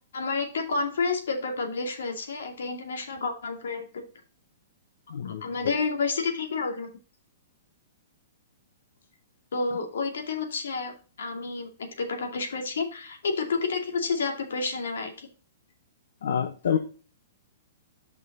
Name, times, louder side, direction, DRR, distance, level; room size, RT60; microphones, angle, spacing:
voice 1, 0.1-4.1 5.2-6.9 9.5-11.7 12.0-15.3, left 4 dB, 90° left, 3 dB, 2.3 m, -30 dB
voice 2, 5.1-5.4 16.2-16.8, left 8 dB, 70° left, 6 dB, 0.9 m, -27 dB
6.7 x 5.5 x 4.0 m, 0.37 s
hypercardioid pair, 165°, 0 cm